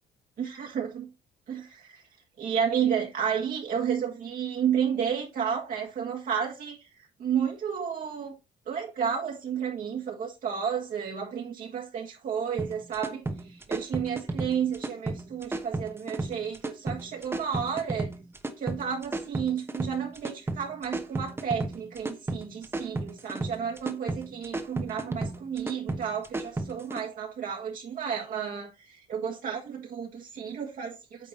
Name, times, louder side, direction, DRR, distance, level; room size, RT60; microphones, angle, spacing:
voice 1, 0.4-1.1 1.5-2.0 2.4-6.8 7.2-8.3 8.7-13.2 13.5-18.1 18.6-31.3, right 7 dB, 55° right, 1.8 m, -31 dB
sound 1, 12.6-27.0, right 2 dB, 15° right, 1.0 m, -33 dB
8.8 x 3.8 x 4.0 m
cardioid pair, 110°, 17 cm